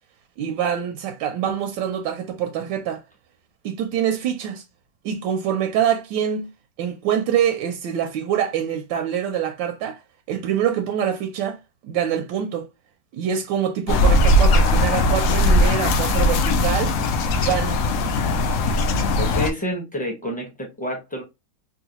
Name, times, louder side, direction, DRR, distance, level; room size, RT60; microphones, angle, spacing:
voice 1, 0.4-3.0 3.6-4.6 5.0-6.5 6.8-10.0 10.3-11.6 11.8-12.7 13.1-17.0 17.3-17.8, right 9 dB, 85° right, 1.3 m, -25 dB
sound 1, 13.9-19.5, left 1 dB, 85° left, 0.7 m, -19 dB
voice 2, 19.2-21.2, equal, 5° left, 0.7 m, -28 dB
3.8 x 2.2 x 2.8 m
omnidirectional pair, 2.0 m